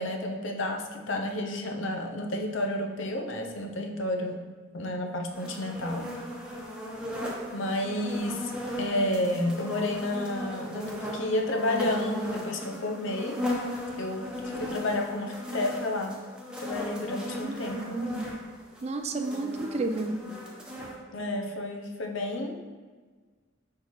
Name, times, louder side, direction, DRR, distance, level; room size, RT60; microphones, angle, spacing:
voice 1, 0.0-4.5 4.7-6.1 7.5-8.5 8.8-13.4 14.0-16.2 16.6-18.0 21.1-22.6, left 1 dB, 75° left, 3 dB, 0.7 m, -31 dB
sound 1, 5.3-20.9, left 1 dB, 5° right, 0.9 m, -36 dB
voice 2, 17.4-18.3 18.8-20.2, right 2 dB, 35° right, 6 dB, 0.4 m, -32 dB
6.5 x 5.4 x 3.1 m, 1.5 s
head